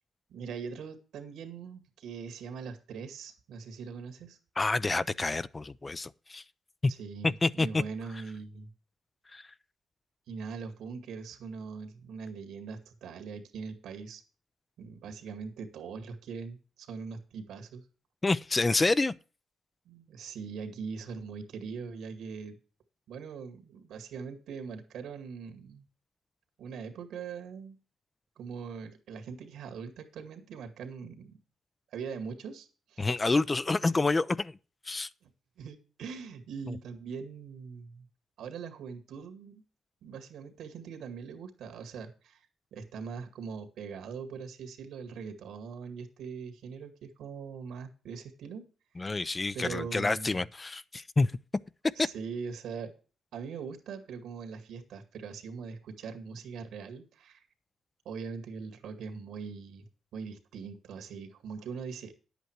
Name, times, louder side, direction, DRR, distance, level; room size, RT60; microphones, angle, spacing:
voice 1, 0.3-4.4 6.9-8.7 10.3-14.2 14.8-17.9 19.9-22.6 23.1-25.8 26.6-27.8 28.4-31.4 31.9-33.2 35.2-35.3 35.6-38.1 38.4-39.6 40.0-42.5 42.7-48.6 49.0-49.1 49.5-50.4 52.0-52.9 53.3-57.5 58.1-62.1, right 5 dB, 85° right, 2.0 m, -41 dB
voice 2, 4.6-6.4 6.8-6.9 7.2-7.8 9.3-9.5 18.2-19.1 33.0-34.6 34.9-35.1 49.0-51.3 52.0-52.1, left 3 dB, 25° left, 0.5 m, -28 dB
10.5 x 8.2 x 4.6 m
cardioid pair, 85°, 0 cm